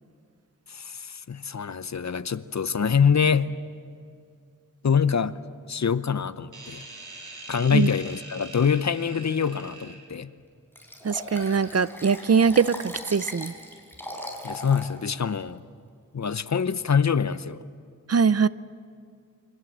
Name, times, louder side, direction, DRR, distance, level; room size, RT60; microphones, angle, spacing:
voice 1, 0.7-3.5 4.8-5.4 5.7-6.9 7.5-10.3 14.4-15.6 16.1-17.6, left 6 dB, 60° left, 14 dB, 0.8 m, -25 dB
sound 1, 6.5-10.1, right 2 dB, 75° right, 5.3 m, -43 dB
Liquid, 10.7-14.9 15.4-15.5, left 1 dB, 5° left, 4.8 m, -39 dB
voice 2, 11.0-13.5 18.1-18.5, right 6 dB, 50° right, 17 dB, 0.6 m, -22 dB
28.0 x 23.5 x 7.4 m, 2.3 s
wide cardioid pair, 65°, 31 cm